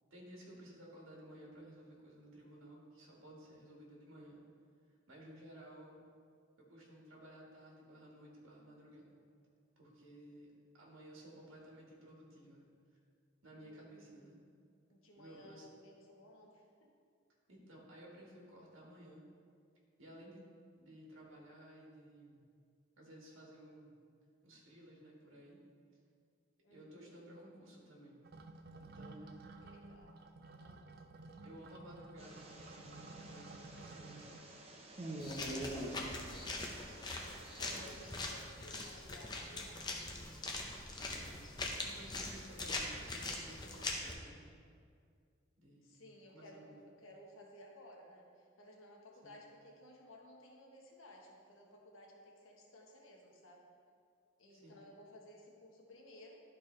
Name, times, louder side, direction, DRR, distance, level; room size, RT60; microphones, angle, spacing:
voice 1, 0.1-4.4 5.1-6.0 6.6-9.2 9.8-12.7 13.4-14.4 15.1-15.7 17.5-19.2 20.0-20.4 20.8-22.4 23.0-24.0 24.4-25.6 25.9-26.0 26.7-28.2 28.8-29.4 31.4-34.4 35.2-36.4 37.6-37.9 41.0-41.3 41.8-44.6 45.6-46.1 46.3-46.8 49.2-49.3 54.5-54.8, right 1 dB, 85° right, -3 dB, 1.7 m, -56 dB
voice 2, 13.6-14.5 14.9-16.9 26.6-27.2 29.2-30.8 37.2-40.3 45.8-53.6 54.4-56.4, left 1 dB, 80° left, -1 dB, 1.3 m, -58 dB
bathtub draining, 28.2-34.4, right 2 dB, 50° right, 0.4 m, -53 dB
sound 1, 32.2-38.3, right 1 dB, 30° right, 0.8 m, -47 dB
sound 2, 35.2-44.1, left 2 dB, 20° left, 0.6 m, -42 dB
12.0 x 4.4 x 3.2 m, 2.2 s
head